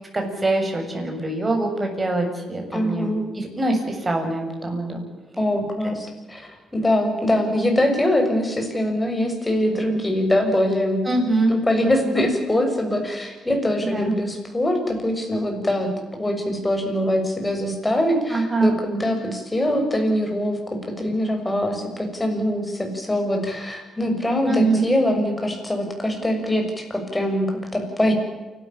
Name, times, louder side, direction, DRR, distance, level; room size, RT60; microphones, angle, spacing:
voice 1, 0.1-3.1 3.3-5.0 5.8-5.9 7.2-7.3 11.1-11.5 13.9-14.1 18.3-18.7 24.5-24.9, right 2 dB, 20° right, 3 dB, 7.4 m, -23 dB
voice 2, 2.7-3.2 5.4-6.4 6.7-11.0 11.5-15.9 16.2-28.1, left 1 dB, 15° left, 3 dB, 6.9 m, -23 dB
28.5 x 13.5 x 8.8 m, 1.2 s
cardioid pair, 90°, 0 cm